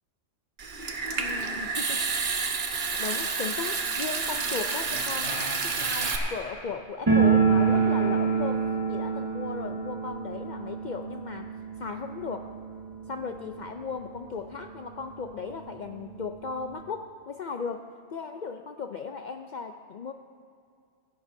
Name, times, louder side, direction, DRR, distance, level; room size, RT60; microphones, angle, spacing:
Water tap faucet / Sink (filling or washing) / Trickle dribble, 0.6-6.2, right 4 dB, 65° right, 1.2 m, -29 dB
voice 1, 1.2-2.4 2.7-8.6 8.9-11.5 11.8-12.5 13.1-17.8 18.1-20.1, left 5 dB, 55° left, 6 dB, 0.6 m, -36 dB
sound 1, 4.6-6.8 7.4-8.7, left 1 dB, 70° left, 3.5 m, -41 dB
sound 2, 7.1-13.8 14.0-14.1 14.4-14.5 15.2-15.3 15.6-16.8, right 5 dB, 20° right, 1.4 m, -26 dB
24.5 x 11.0 x 2.7 m, 2.3 s
omnidirectional pair, 1.1 m